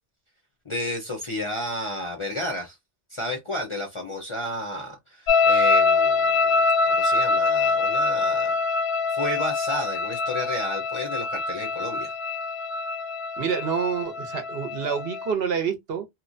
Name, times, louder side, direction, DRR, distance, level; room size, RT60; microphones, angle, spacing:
voice 1, 0.7-2.8 3.1-8.5 9.1-12.1, left 1 dB, 35° left, 0.5 m, -32 dB
sound 1, 5.3-15.3, left 4 dB, 70° left, 0.8 m, -24 dB
voice 2, 13.4-16.1, right 6 dB, 65° right, 0.9 m, -27 dB
3.0 x 2.1 x 2.5 m
omnidirectional pair, 1.2 m